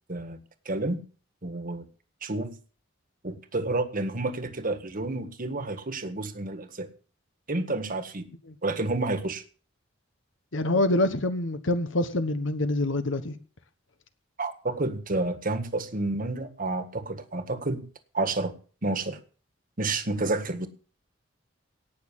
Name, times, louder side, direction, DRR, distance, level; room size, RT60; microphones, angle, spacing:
voice 1, 0.1-1.0 1.4-1.8 2.2-2.6 3.2-6.9 7.5-8.3 8.6-9.4 14.4-17.8 18.1-18.5 18.8-19.2 19.8-20.7, right 2 dB, 45° right, 1.7 m, -30 dB
voice 2, 10.5-13.4, left 1 dB, 75° left, 1.3 m, -26 dB
18.0 x 6.5 x 7.3 m
head